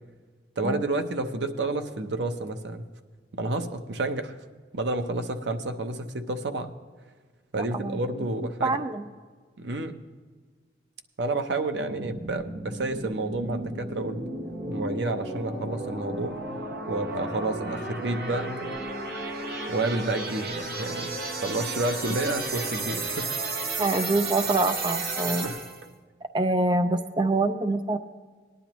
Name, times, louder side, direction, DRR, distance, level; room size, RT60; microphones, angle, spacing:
voice 1, 0.6-2.9 3.3-4.4 4.7-6.8 7.5-8.8 9.6-10.0 11.2-14.3 14.7-16.6 16.9-18.8 19.7-21.1 21.4-23.3 25.2-25.6, right 2 dB, 80° right, 7 dB, 0.8 m, -30 dB
voice 2, 8.6-9.1 23.8-25.5 26.3-28.0, right 2 dB, 25° right, 9 dB, 0.4 m, -25 dB
sound 1, 11.8-25.9, right 2 dB, 55° right, 1.1 m, -33 dB
19.0 x 10.0 x 3.0 m, 1.5 s
head